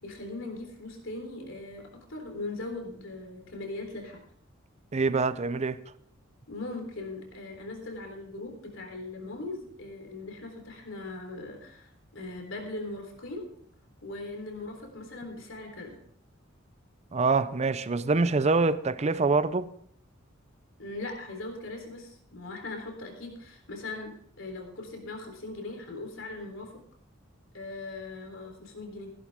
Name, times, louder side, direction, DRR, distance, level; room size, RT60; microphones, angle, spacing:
voice 1, 0.0-4.2 6.5-13.5 14.0-16.0 20.8-26.7 27.5-29.1, left 2 dB, 70° left, 3.7 m, -40 dB
voice 2, 4.9-5.8 17.1-19.7, right 3 dB, 35° right, 0.6 m, -25 dB
16.0 x 11.5 x 3.6 m
head